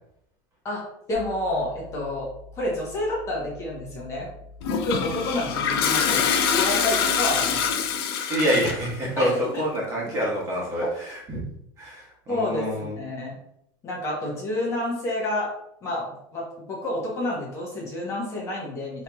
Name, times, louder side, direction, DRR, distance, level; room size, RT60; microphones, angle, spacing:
voice 1, 0.6-2.3 2.5-4.3 4.6-6.2 6.5-7.8 9.2-9.4 12.3-13.4 13.8-15.5 15.8-19.0, left 1 dB, 25° left, -4 dB, 1.1 m, -29 dB
sound 1, 1.1-7.9, left 3 dB, 50° left, 0.9 m, -46 dB
Toilet flush, 4.6-8.9, left 7 dB, 80° left, 0.6 m, -24 dB
voice 2, 8.3-11.5 11.8-12.9, equal, 25° right, -4 dB, 1.2 m, -26 dB
4.6 x 3.0 x 2.3 m, 0.74 s
supercardioid pair, 165°, 13 cm